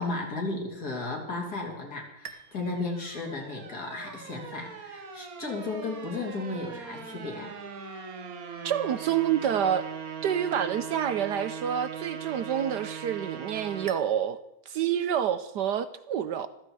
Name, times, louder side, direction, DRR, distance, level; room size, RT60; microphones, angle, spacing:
voice 1, 0.0-7.6, left 3 dB, 45° left, 1 dB, 3.6 m, -34 dB
sound 1, 2.2-14.0, right 7 dB, 45° right, 1.5 m, -40 dB
voice 2, 8.6-9.8 10.2-14.4 14.7-16.5, right 9 dB, 70° right, 13 dB, 1.1 m, -28 dB
15.0 x 14.0 x 4.8 m, 0.91 s
omnidirectional pair, 2.4 m